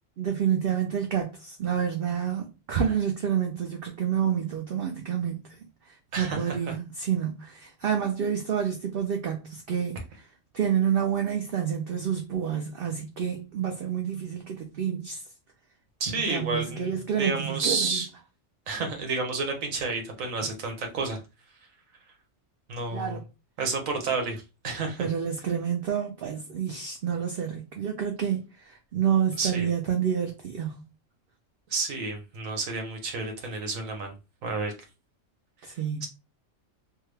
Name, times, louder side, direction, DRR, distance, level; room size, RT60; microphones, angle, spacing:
voice 1, 0.2-5.5 6.2-10.2 10.5-15.2 16.1-18.0 22.9-23.2 25.0-30.7 35.6-36.1, right 8 dB, 60° right, 0.6 m, -28 dB
voice 2, 6.1-6.7 16.0-18.1 18.7-21.2 22.7-23.2 23.6-25.1 29.4-29.7 31.7-34.1 34.4-34.7 36.0-36.1, right 3 dB, 90° right, 1.3 m, -30 dB
3.4 x 2.1 x 3.2 m
omnidirectional pair, 1.3 m